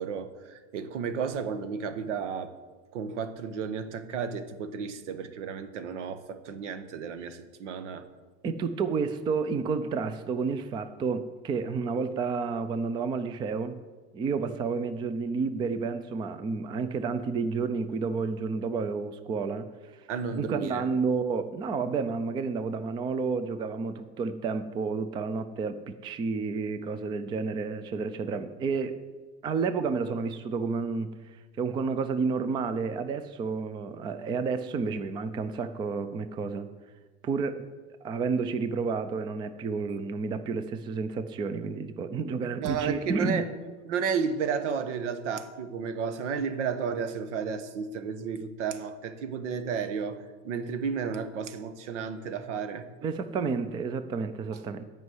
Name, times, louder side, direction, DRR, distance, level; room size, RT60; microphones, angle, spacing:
voice 1, 0.0-2.5 2.9-8.0 20.1-20.8 42.6-43.5 43.8-52.9, right 6 dB, 85° right, 10 dB, 1.2 m, -32 dB
voice 2, 8.4-13.8 14.1-19.7 19.9-20.0 20.3-29.0 29.4-31.1 31.6-36.7 37.2-37.6 38.0-43.5 53.0-54.8, right 5 dB, 15° right, 11 dB, 0.3 m, -30 dB
12.5 x 5.5 x 7.8 m, 1.3 s
supercardioid pair, 145°, 35 cm